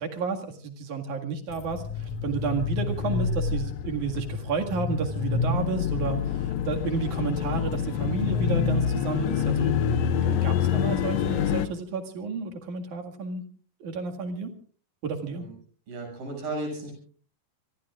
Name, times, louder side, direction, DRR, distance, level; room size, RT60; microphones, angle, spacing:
voice 1, 0.0-9.7 10.2-13.4 13.8-14.5 15.0-15.5, right 5 dB, 60° right, 4 dB, 3.3 m, -31 dB
sound 1, 1.5-11.7, left 7 dB, 70° left, 1.6 m, -27 dB
voice 2, 15.9-16.9, right 2 dB, 80° right, 1 dB, 8.6 m, -34 dB
26.0 x 22.0 x 2.4 m, 0.41 s
omnidirectional pair, 4.1 m